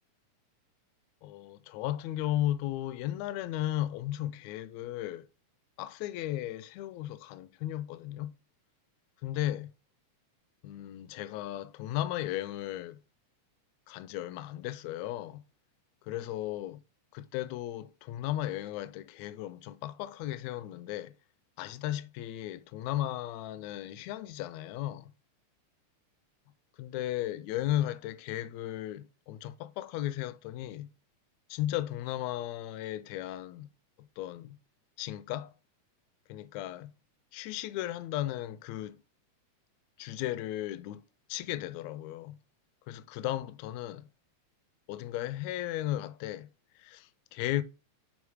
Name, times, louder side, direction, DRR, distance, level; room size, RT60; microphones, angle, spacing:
voice 1, 1.2-5.3 5.8-8.3 9.2-9.7 10.6-13.0 13.9-15.4 16.0-16.8 17.1-21.1 21.6-25.1 26.8-30.9 31.5-33.7 34.2-34.6 35.0-35.5 36.3-36.9 37.3-39.0 40.0-41.0 41.3-42.4 42.9-44.1 44.9-46.5 46.7-47.6, left 13 dB, 80° left, 1.7 m, -35 dB
7.2 x 3.7 x 4.9 m
omnidirectional pair, 3.4 m